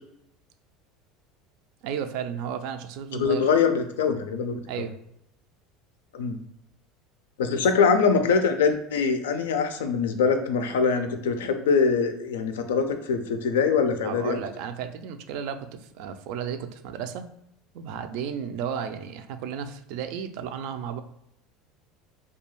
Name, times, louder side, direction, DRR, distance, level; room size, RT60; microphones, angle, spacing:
voice 1, 1.8-3.5 4.7-5.0 7.4-7.5 14.0-17.3 17.7-21.0, right 8 dB, 70° right, 9 dB, 0.3 m, -33 dB
voice 2, 3.1-4.6 6.1-6.4 7.4-14.4, left 5 dB, 90° left, 7 dB, 0.3 m, -23 dB
2.3 x 2.2 x 3.0 m, 0.78 s
supercardioid pair, 100°, 0 cm